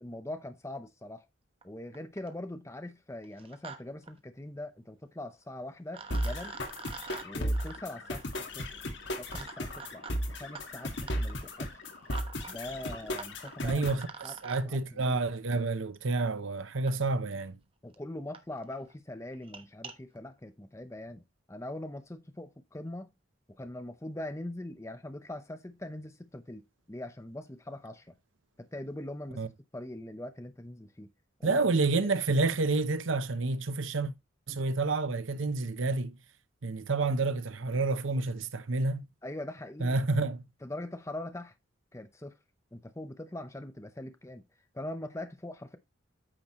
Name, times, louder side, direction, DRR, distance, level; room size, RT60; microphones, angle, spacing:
voice 1, 0.0-1.3 1.6-6.5 7.2-8.7 9.2-11.7 12.5-13.8 14.2-14.3 14.6-15.2 17.8-21.2 21.5-23.1 23.6-28.2 28.7-31.1 31.4-31.6 32.0-32.1 39.2-40.0 40.6-41.5 41.9-42.4 42.7-44.4 44.7-45.8, left 1 dB, 15° left, 0.7 m, -42 dB
sound 1, 1.6-1.7 1.9-2.4 3.2-3.8 4.0-4.1 5.4-5.5 5.9-14.6 15.9-16.0 16.9-17.0 17.6-17.7 17.9-18.0 18.3-18.4 18.7-18.9 19.3-19.9, right 5 dB, 30° right, 1.1 m, -48 dB
sound 2, 6.1-14.1, equal, 65° left, 1.8 m, -35 dB
voice 2, 13.6-14.1 14.4-17.5 29.4-29.5 31.4-34.1 34.5-36.2 36.6-39.1 39.8-40.4, right 3 dB, 80° right, 0.9 m, -29 dB
9.1 x 5.9 x 3.0 m
head